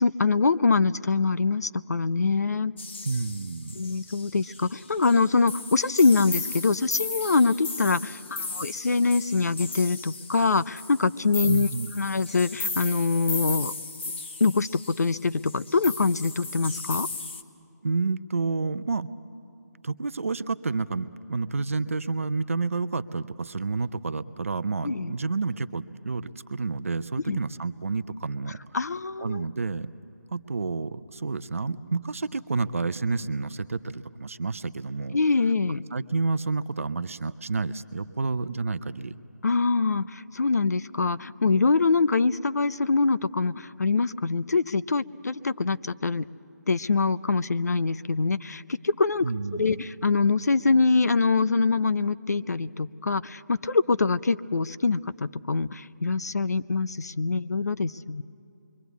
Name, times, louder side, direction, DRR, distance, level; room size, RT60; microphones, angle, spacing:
voice 1, 0.0-2.7 3.7-11.7 11.9-13.7 14.4-17.1 24.8-25.1 27.3-27.4 28.7-29.4 35.1-35.8 39.4-46.3 46.7-58.2, left 4 dB, 60° left, 15 dB, 0.6 m, -24 dB
sound 1, 2.8-17.4, left 3 dB, 40° left, 1.3 m, -36 dB
voice 2, 3.0-3.8 11.5-11.9 17.8-19.1 19.8-28.6 29.2-29.9 30.3-35.2 35.9-39.1 49.2-49.6, right 4 dB, 50° right, 13 dB, 0.7 m, -29 dB
26.0 x 23.5 x 8.3 m, 2.8 s
figure-of-eight pair, 175°, 10 cm